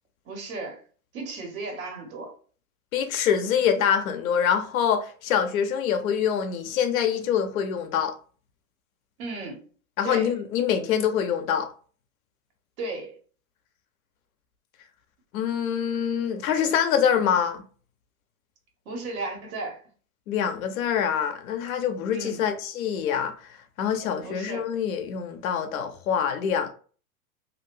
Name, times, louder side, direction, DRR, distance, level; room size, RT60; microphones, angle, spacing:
voice 1, 0.2-0.8 1.1-2.3 9.2-9.7 10.0-10.3 12.8-13.2 18.8-19.8 22.1-22.4 24.2-24.7, right 2 dB, 65° right, 1.4 m, -35 dB
voice 2, 2.9-8.1 10.0-11.7 15.3-17.6 20.3-23.3 23.8-26.7, left 8 dB, 70° left, 0.7 m, -25 dB
2.7 x 2.5 x 3.1 m
hypercardioid pair, 100°, 43 cm